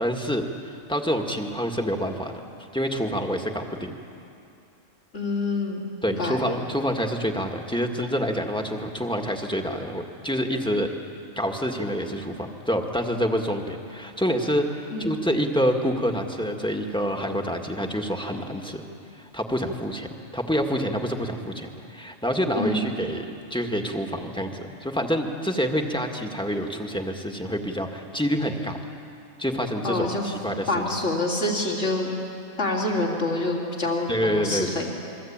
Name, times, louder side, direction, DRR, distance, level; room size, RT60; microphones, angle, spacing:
voice 1, 0.0-2.3 2.7-3.9 6.0-10.9 11.4-18.8 19.3-28.8 29.4-30.8 34.1-34.7, equal, 5° left, 3 dB, 1.9 m, -27 dB
voice 2, 5.1-6.4 14.9-15.1 22.6-22.9 29.8-30.3 30.7-32.1 32.6-34.9, left 2 dB, 65° left, -1 dB, 3.6 m, -26 dB
29.0 x 22.5 x 8.9 m, 2.6 s
omnidirectional pair, 1.3 m